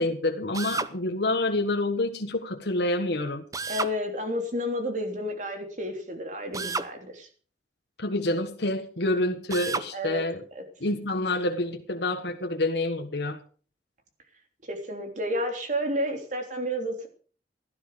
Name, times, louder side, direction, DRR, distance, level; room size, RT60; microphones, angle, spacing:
voice 1, 0.0-3.4 8.0-10.4 10.8-13.4, left 2 dB, 75° left, 4 dB, 1.4 m, -27 dB
Drill, 0.5-0.9 3.5-4.0 6.5-6.9 9.5-9.9, right 4 dB, 20° right, 0.7 m, -31 dB
voice 2, 3.7-7.3 9.9-10.2 10.5-10.6 14.6-17.1, equal, 45° right, 4 dB, 3.3 m, -31 dB
16.0 x 12.0 x 5.0 m, 0.41 s
head